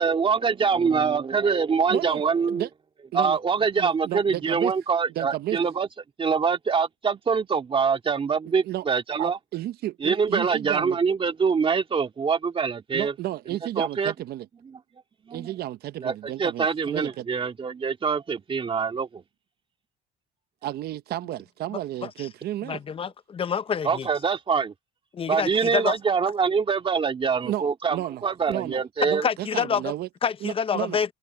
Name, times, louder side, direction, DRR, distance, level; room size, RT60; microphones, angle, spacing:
voice 1, 0.0-2.7 3.1-5.9 6.2-9.4 10.0-13.1 13.8-14.1 15.3-15.5 16.0-19.2 23.8-24.7 25.3-29.3, right 5 dB, 30° right, 2.3 m, -24 dB
voice 2, 1.9-2.7 3.1-3.4 3.8-4.7 5.2-5.6 8.6-8.8 9.2-11.0 12.9-14.5 15.3-17.3 20.6-22.8 27.4-28.8 29.1-30.1 30.4-31.0, right 14 dB, 70° right, 0.8 m, -32 dB
voice 3, 22.6-24.1 25.1-26.0 29.2-29.9 30.2-31.1, left 7 dB, 35° left, 0.7 m, -27 dB
open air
cardioid pair, 110°, 17 cm